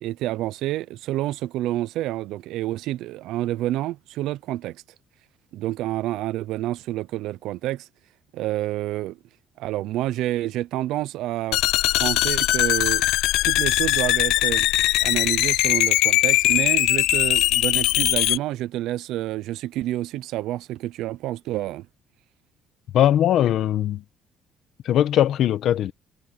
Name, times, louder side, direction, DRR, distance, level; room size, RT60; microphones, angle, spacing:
voice 1, 0.0-4.8 5.5-7.9 8.3-9.2 9.6-11.6 12.0-13.0 13.4-14.7 15.0-21.9, right 15 dB, 80° right, 0.6 m, -28 dB
sound 1, 11.5-18.4, left 17 dB, 90° left, 0.4 m, -20 dB
voice 2, 22.9-24.0 24.8-25.9, left 11 dB, 55° left, 1.2 m, -20 dB
cardioid pair, 150°, 0 cm